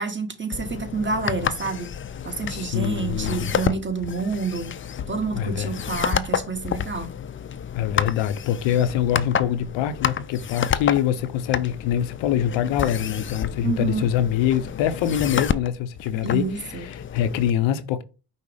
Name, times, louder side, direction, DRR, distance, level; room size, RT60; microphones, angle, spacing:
voice 1, 0.0-1.9 2.2-4.8 5.1-7.1 13.6-14.1 16.2-16.9, right 4 dB, 25° right, 1.2 m, -28 dB
sound 1, 0.5-17.5, left 8 dB, 30° left, 0.4 m, -30 dB
voice 2, 2.5-3.5 5.3-5.7 7.7-18.0, left 10 dB, 90° left, 0.6 m, -24 dB
5.4 x 2.0 x 4.8 m
supercardioid pair, 50°, 44 cm